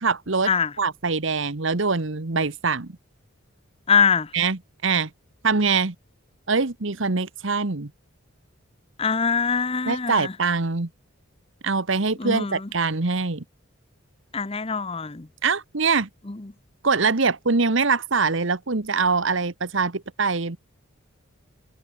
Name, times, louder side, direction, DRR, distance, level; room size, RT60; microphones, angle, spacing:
voice 1, 0.0-0.5 0.8-2.9 4.3-5.1 5.4-5.9 6.5-7.9 9.9-10.9 11.6-13.4 15.4-16.1 16.8-20.6, right 4 dB, 65° right, 1.2 m, -23 dB
voice 2, 3.9-4.3 9.0-10.3 12.2-12.7 14.3-15.3 16.3-16.5, left 5 dB, 25° left, 0.7 m, -23 dB
head